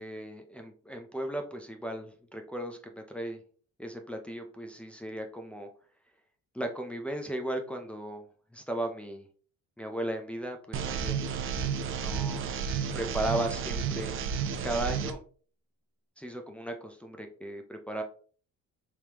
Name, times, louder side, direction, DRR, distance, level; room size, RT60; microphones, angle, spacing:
voice 1, 0.0-3.4 3.8-5.7 6.5-8.2 8.5-9.3 9.8-11.2 11.9-14.2 14.6-15.2 16.2-18.0, right 1 dB, 5° left, 2 dB, 0.5 m, -36 dB
sound 1, 10.7-15.1, right 7 dB, 45° right, 0.5 m, -32 dB
4.8 x 3.5 x 2.9 m, 0.43 s
cardioid pair, 155°, 30 cm